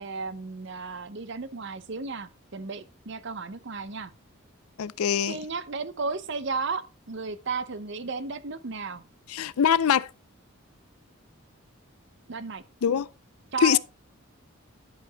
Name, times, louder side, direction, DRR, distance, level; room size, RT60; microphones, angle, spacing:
voice 1, 0.0-4.1 5.3-9.0 12.3-12.6 13.5-13.8, right 4 dB, 55° right, 0.7 m, -34 dB
voice 2, 4.8-5.4 9.3-10.1 12.8-13.1 13.6-13.8, left 8 dB, 85° left, 0.4 m, -23 dB
11.0 x 5.1 x 3.9 m
head